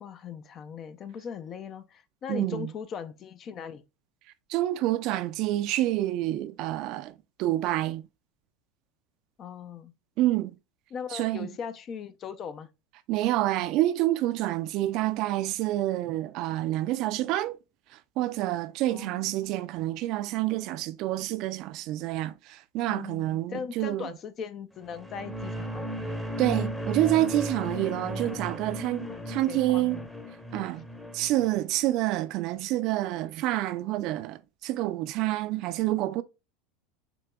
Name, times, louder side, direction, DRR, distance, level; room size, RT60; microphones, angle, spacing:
voice 1, 0.0-3.8 9.4-9.9 10.9-12.7 18.9-19.2 22.9-25.9 28.0-28.6 29.0-30.1, left 7 dB, 40° left, 0.5 m, -39 dB
voice 2, 2.3-2.7 4.5-8.1 10.2-10.6 11.1-11.5 13.1-17.6 18.2-24.1 26.4-30.0 30.5-30.9 31.1-36.2, right 15 dB, 55° right, 0.4 m, -28 dB
sound 1, 24.8-31.5, right 1 dB, 5° left, 0.8 m, -35 dB
6.8 x 2.9 x 2.3 m
hypercardioid pair, 90°, 0 cm